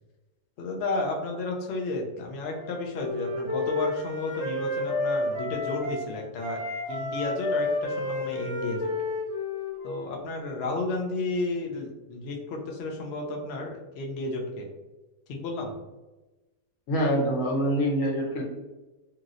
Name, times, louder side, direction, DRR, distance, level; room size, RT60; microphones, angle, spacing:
voice 1, 0.6-6.6 6.9-8.9 9.8-14.7 15.3-15.7, left 2 dB, 90° left, 1 dB, 0.5 m, -32 dB
Wind instrument woodwind instrument, 2.5-6.1 6.4-10.2, left 2 dB, 30° left, 0.4 m, -31 dB
voice 2, 16.9-18.4, equal, 60° left, -2 dB, 1.0 m, -25 dB
3.0 x 2.7 x 2.5 m, 1.1 s
omnidirectional pair, 1.7 m